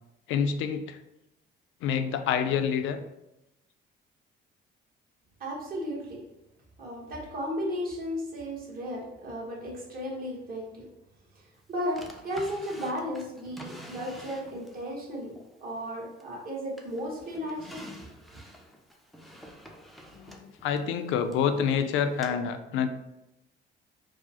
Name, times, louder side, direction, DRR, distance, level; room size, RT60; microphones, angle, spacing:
voice 1, 0.3-1.0 1.8-3.0 20.1-22.9, left 7 dB, 80° left, 8 dB, 0.4 m, -27 dB
voice 2, 5.4-6.2 6.8-10.8 11.7-15.3 15.6-18.1, equal, 50° right, -2 dB, 1.1 m, -34 dB
Drawer open or close, 12.0-14.9 15.4-16.4 16.8-21.5 22.2-22.3, equal, ahead, 0.3 m, -47 dB
4.7 x 2.0 x 2.8 m, 0.90 s
cardioid pair, 145°, 20 cm